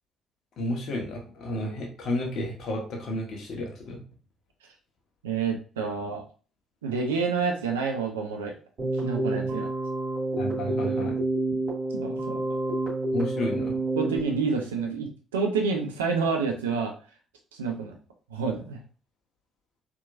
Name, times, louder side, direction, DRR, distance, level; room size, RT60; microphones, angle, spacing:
voice 1, 0.6-4.0 10.4-11.2 13.1-13.8, left 1 dB, 55° left, 0 dB, 1.5 m, -31 dB
voice 2, 5.2-6.2 6.8-8.5 9.0-9.7 11.9-12.4 14.0-16.9 17.6-18.0 18.3-18.8, right 5 dB, 80° right, 2 dB, 0.8 m, -28 dB
Keyboard (musical), 8.8-14.2, right 2 dB, 55° right, 2.2 m, -28 dB
4.6 x 3.5 x 2.6 m, 0.38 s
figure-of-eight pair, 50°, 0 cm